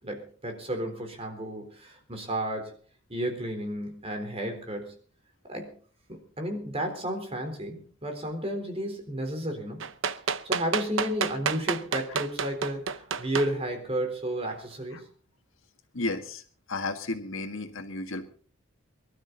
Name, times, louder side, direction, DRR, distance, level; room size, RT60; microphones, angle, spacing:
voice 1, 0.0-2.8 3.1-4.9 5.4-5.7 6.1-9.8 10.4-15.0, right 1 dB, 30° right, 4 dB, 3.9 m, -32 dB
sound 1, 9.8-13.5 14.5-14.6, right 6 dB, 70° right, 0.8 m, -29 dB
voice 2, 15.9-16.4 16.7-18.3, left 2 dB, 75° left, 6 dB, 1.9 m, -33 dB
23.0 x 12.5 x 4.0 m, 0.43 s
head